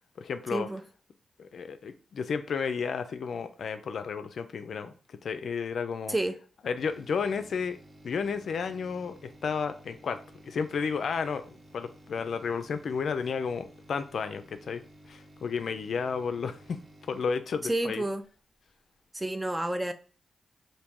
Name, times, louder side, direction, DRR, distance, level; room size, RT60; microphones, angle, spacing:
voice 1, 0.2-0.7 1.4-6.2 6.6-7.8 8.0-10.2 10.4-14.8 15.1-16.8 17.1-18.0, left 5 dB, 70° left, 0.3 m, -32 dB
sound 1, 6.8-18.4 18.7-18.8, right 1 dB, 30° right, 1.0 m, -54 dB
voice 2, 17.6-18.2 19.1-19.9, right 1 dB, 15° right, 0.4 m, -29 dB
2.9 x 2.6 x 3.6 m
cardioid pair, 60°, 0 cm